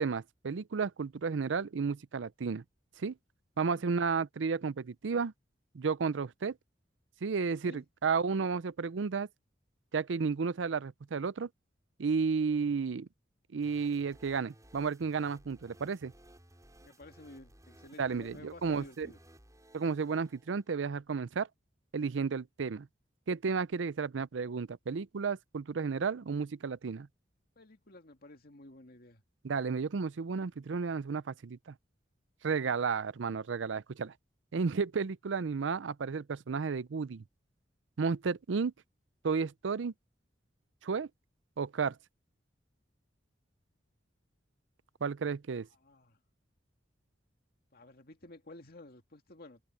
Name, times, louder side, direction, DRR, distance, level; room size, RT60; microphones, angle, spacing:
voice 1, 0.0-2.6 3.0-3.1 3.6-5.3 5.7-6.6 7.2-9.3 9.9-11.5 12.0-13.1 13.5-16.1 18.0-19.1 19.7-21.5 21.9-22.9 23.3-27.1 29.4-31.7 32.4-34.1 34.5-37.2 38.0-38.7 39.2-39.9 40.8-41.1 41.6-42.0 45.0-45.7, right 5 dB, 90° right, 0.5 m, -32 dB
sound 1, 13.6-20.7, right 1 dB, 20° right, 6.5 m, -59 dB
voice 2, 16.8-19.2 27.6-29.2 45.7-46.2 47.7-49.6, left 2 dB, 55° left, 2.3 m, -52 dB
open air
head